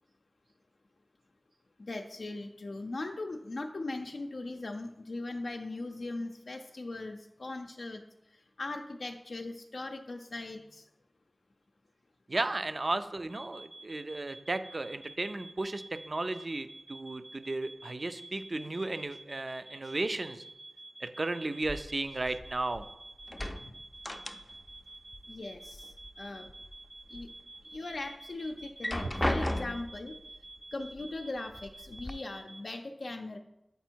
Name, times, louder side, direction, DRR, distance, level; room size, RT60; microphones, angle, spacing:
voice 1, 1.8-8.0 8.3-10.8 23.6-23.7 25.3-26.5 27.1-27.3 27.7-30.1 30.7-33.4, left 2 dB, 75° left, 2 dB, 0.5 m, -39 dB
voice 2, 12.3-20.4 21.0-22.9 29.0-29.1, right 2 dB, 50° right, 11 dB, 0.5 m, -34 dB
sound 1, 13.3-32.6, right 2 dB, 75° right, 1.6 m, -50 dB
sound 2, 21.6-22.9 23.2-24.8 25.1-26.1 26.5-27.3 27.8-27.9 28.6-30.0 31.0-31.1 31.5-32.1, left 1 dB, 15° left, 0.4 m, -35 dB
8.1 x 4.2 x 4.5 m, 0.89 s
wide cardioid pair, 65°, 0 cm